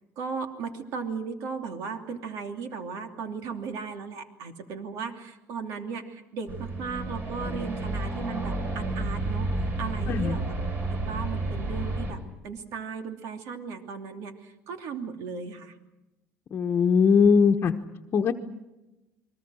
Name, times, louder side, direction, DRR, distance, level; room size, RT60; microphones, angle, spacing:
voice 1, 0.2-10.5 10.9-15.8, right 5 dB, 75° right, 5 dB, 2.9 m, -36 dB
sound 1, 6.5-12.1, right 2 dB, 40° right, 5.8 m, -31 dB
voice 2, 16.5-17.7 18.1-18.3, left 6 dB, 40° left, 2 dB, 1.1 m, -20 dB
29.5 x 22.5 x 6.4 m, 0.99 s
cardioid pair, 140°, 6 cm